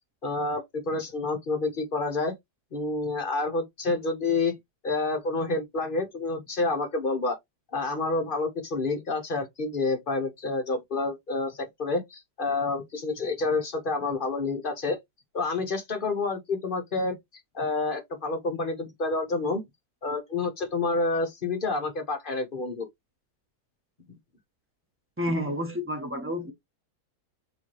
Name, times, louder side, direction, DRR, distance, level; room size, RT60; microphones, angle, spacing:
voice 1, 0.2-2.3 2.7-4.5 4.8-7.4 7.7-15.0 15.3-17.1 17.5-19.6 20.0-22.9, left 3 dB, 40° left, 1.0 m, -28 dB
voice 2, 25.2-26.5, equal, 10° right, 0.7 m, -30 dB
4.8 x 3.0 x 2.9 m
omnidirectional pair, 1.7 m